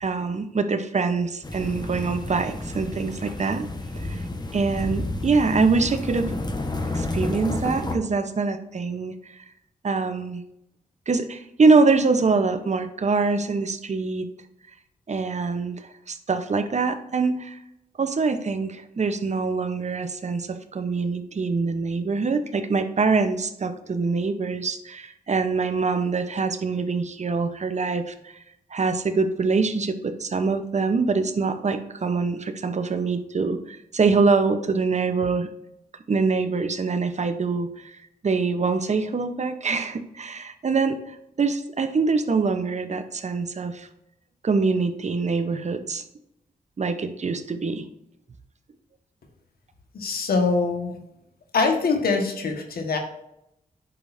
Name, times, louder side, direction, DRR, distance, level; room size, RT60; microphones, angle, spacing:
voice 1, 0.0-3.7 4.0-4.2 4.5-6.4 6.9-9.3 9.8-10.4 11.1-14.3 15.1-17.6 18.0-28.4 28.7-35.5 36.1-38.0 38.2-43.9 44.4-46.0 46.8-47.9, right 4 dB, 50° right, 8 dB, 0.9 m, -24 dB
sound 1, 1.4-8.0, left 2 dB, 25° left, 1.3 m, -30 dB
voice 2, 49.9-51.0 51.5-53.0, left 4 dB, 75° left, 4 dB, 1.5 m, -23 dB
8.7 x 6.5 x 2.7 m, 0.81 s
cardioid pair, 60°, 16 cm